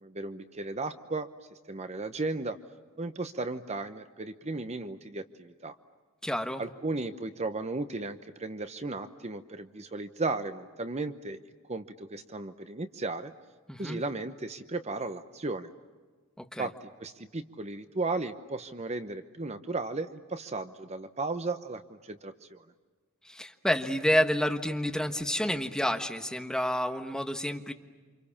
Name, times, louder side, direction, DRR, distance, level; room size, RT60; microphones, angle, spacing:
voice 1, 0.0-1.3 1.7-2.6 3.0-5.7 6.6-11.4 11.7-13.3 13.8-15.7 16.6-16.7 17.0-22.6, right 3 dB, 30° right, 9 dB, 0.9 m, -35 dB
voice 2, 6.2-6.6 13.7-14.0 16.4-16.7 23.2-27.7, equal, 5° left, 5 dB, 1.4 m, -29 dB
29.0 x 27.0 x 7.2 m, 1.4 s
head